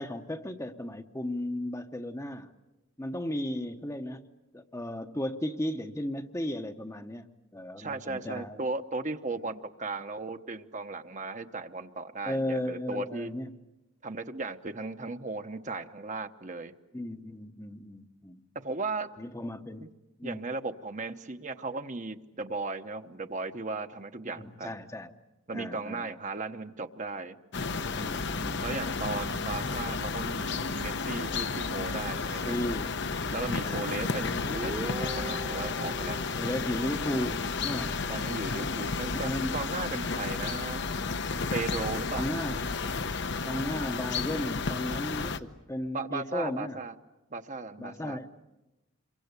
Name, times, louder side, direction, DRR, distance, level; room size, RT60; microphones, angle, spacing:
voice 1, 0.0-2.5 3.0-4.2 4.5-8.6 12.2-13.5 16.9-18.4 19.2-19.9 20.2-20.4 24.3-25.1 25.5-26.0 27.9-29.0 32.2-33.9 36.4-38.0 39.0-39.6 42.1-42.8 43.5-46.8 47.8-48.3, left 1 dB, 15° left, 0.9 m, -35 dB
voice 2, 7.8-13.3 14.0-16.7 18.5-19.1 19.8-19.9 20.2-24.8 25.5-27.4 28.6-32.5 33.3-36.2 38.1-40.8 41.5-42.3 45.9-46.9 47.3-48.2, right 3 dB, 35° right, 1.0 m, -36 dB
sound 1, 27.5-45.4, left 4 dB, 55° left, 0.9 m, -32 dB
Guitar, 34.1-37.6, right 1 dB, 20° right, 1.1 m, -40 dB
27.5 x 23.5 x 8.2 m
head